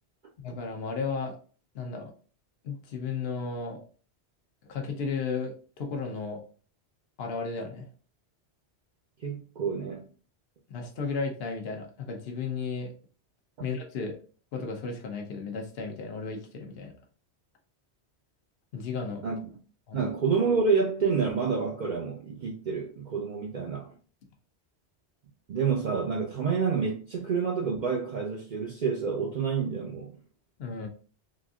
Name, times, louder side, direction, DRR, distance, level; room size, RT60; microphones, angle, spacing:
voice 1, 0.4-1.4 1.7-2.1 2.6-3.8 4.7-6.4 7.2-7.9 10.7-12.9 13.6-14.2 14.5-16.9 18.7-19.2 19.9-20.1 30.6-30.9, left 4 dB, 65° left, 0.9 m, -34 dB
voice 2, 9.2-10.1 13.6-13.7 19.2-19.6 19.9-23.9 25.5-30.2, right 5 dB, 55° right, 0.6 m, -28 dB
4.0 x 2.6 x 2.3 m
omnidirectional pair, 1.1 m